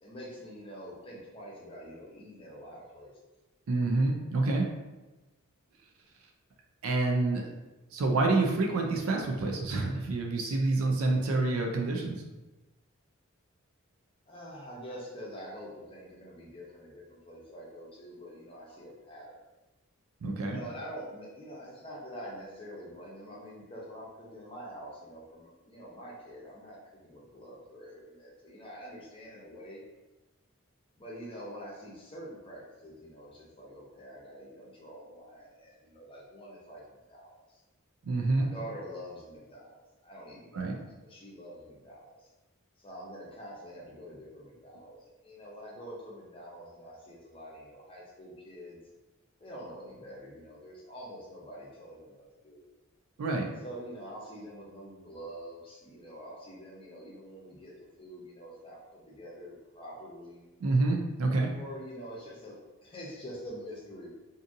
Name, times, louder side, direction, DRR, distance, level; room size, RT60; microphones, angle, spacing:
voice 1, 0.0-3.1 14.3-19.4 20.4-29.8 30.9-36.8 37.1-37.6 38.3-42.3 42.8-48.8 49.4-52.7 53.6-60.5 61.5-62.6 62.8-64.1, equal, 25° left, -4 dB, 0.6 m, -46 dB
voice 2, 3.7-4.7 6.8-7.4 7.9-12.2 20.2-20.6 38.0-38.5 40.5-40.8 53.2-53.5 60.6-61.5, right 2 dB, 85° right, 1 dB, 0.4 m, -27 dB
2.6 x 2.5 x 2.5 m, 1.1 s
head